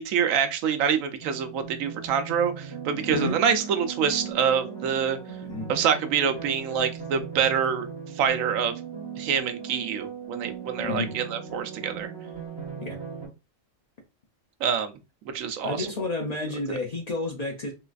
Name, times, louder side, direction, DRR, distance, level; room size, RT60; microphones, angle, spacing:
voice 1, 0.0-5.2 5.7-7.9 8.2-8.7 9.2-12.1 14.6-14.9 15.3-15.9, right 7 dB, 80° right, 1.0 m, -26 dB
sound 1, 1.2-13.2, right 6 dB, 20° right, 1.3 m, -38 dB
voice 2, 10.8-11.1 12.8-13.0 15.6-17.7, left 2 dB, 75° left, 0.3 m, -30 dB
3.8 x 2.4 x 2.3 m
omnidirectional pair, 1.4 m